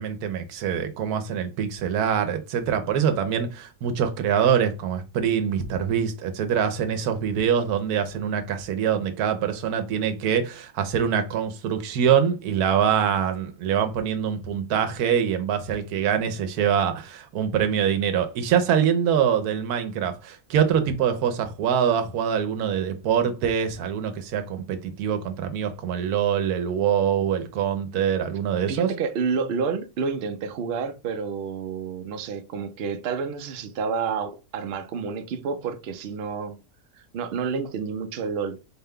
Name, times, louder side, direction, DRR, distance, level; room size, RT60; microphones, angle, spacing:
voice 1, 0.0-28.9, right 8 dB, 90° right, 1.2 m, -24 dB
voice 2, 28.7-36.6 37.1-38.6, right 5 dB, 65° right, 0.6 m, -29 dB
4.2 x 2.2 x 3.6 m
omnidirectional pair, 1.6 m